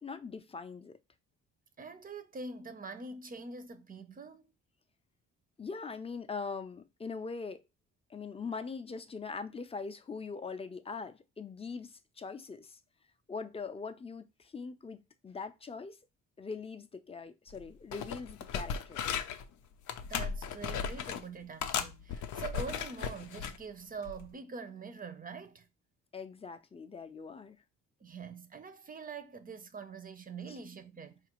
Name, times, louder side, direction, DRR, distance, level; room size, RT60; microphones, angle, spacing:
voice 1, 0.0-1.0 5.6-7.6 8.1-12.8 13.3-16.0 16.4-19.1 26.1-27.6 30.5-30.6, left 4 dB, 20° left, 0.5 m, -42 dB
voice 2, 1.8-4.5 20.0-25.7 28.0-31.2, right 4 dB, 30° right, 0.6 m, -44 dB
sound 1, 17.5-17.6 17.9-19.4 19.9-21.2 21.6-23.6 24.1-24.3, left 7 dB, 75° left, 0.6 m, -36 dB
4.7 x 2.5 x 3.0 m
cardioid pair, 90°, 30 cm